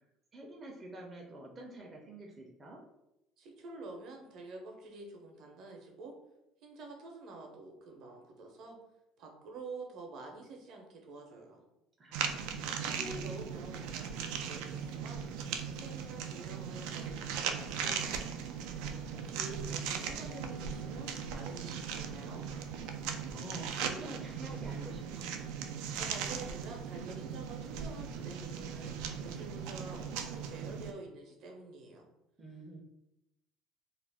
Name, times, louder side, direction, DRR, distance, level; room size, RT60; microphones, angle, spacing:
voice 1, 0.3-2.8 12.0-13.2 23.3-25.4 32.4-32.8, right 1 dB, 25° right, -1 dB, 0.5 m, -48 dB
voice 2, 3.4-6.1 6.6-8.8 9.2-11.6 12.8-15.3 15.7-18.3 19.1-22.4 25.9-32.1, right 3 dB, 60° right, 1 dB, 0.7 m, -48 dB
sound 1, 12.1-30.9, right 7 dB, 80° right, 0.3 m, -38 dB
Bass guitar, 20.3-29.6, right 1 dB, 55° left, 0.7 m, -57 dB
2.4 x 2.1 x 3.3 m, 0.88 s
cardioid pair, 110°, 0 cm